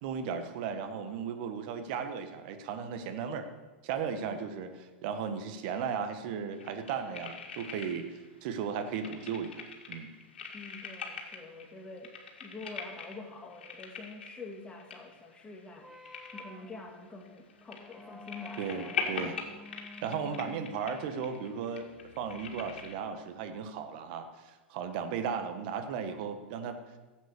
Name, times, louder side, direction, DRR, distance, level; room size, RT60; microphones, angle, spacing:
voice 1, 0.0-3.5 3.8-8.1 8.4-10.1 18.6-19.4 20.0-21.9 22.2-26.8, right 6 dB, 60° right, 8 dB, 1.6 m, -36 dB
sound 1, 6.5-8.3 8.5-22.9, left 5 dB, 80° left, 2.2 m, -42 dB
voice 2, 10.5-15.9 16.3-18.7 19.0-19.2, left 3 dB, 15° left, 2 dB, 2.5 m, -46 dB
sound 2, 15.8-23.6, left 2 dB, 5° right, 1.4 m, -52 dB
13.5 x 8.2 x 6.8 m, 1.2 s
hypercardioid pair, 100°, 6 cm